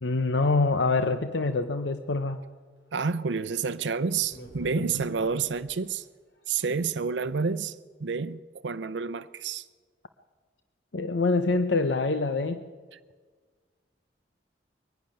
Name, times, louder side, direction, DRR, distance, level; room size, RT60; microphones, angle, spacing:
voice 1, 0.0-2.4 4.9-5.0 10.9-12.6, left 3 dB, 85° left, 9 dB, 0.8 m, -25 dB
voice 2, 2.9-6.1 6.5-9.7, right 5 dB, 85° right, 12 dB, 0.6 m, -29 dB
sound 1, 3.6-3.7 4.2-5.8 6.3-6.8, equal, 65° left, 3.6 m, -48 dB
22.5 x 12.0 x 9.9 m, 1.5 s
head